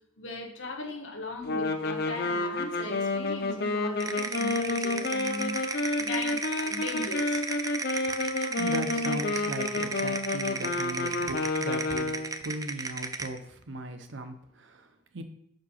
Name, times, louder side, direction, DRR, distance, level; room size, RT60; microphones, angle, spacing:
voice 1, 0.2-5.5 6.0-7.4, left 2 dB, 75° left, 3 dB, 1.3 m, -38 dB
sound 1, 1.4-12.4, left 2 dB, 60° left, 0.8 m, -30 dB
sound 2, 4.0-13.4, right 4 dB, 20° right, 0.4 m, -34 dB
voice 2, 7.8-15.2, right 1 dB, 70° right, 8 dB, 0.8 m, -38 dB
5.3 x 5.3 x 5.7 m, 0.75 s
head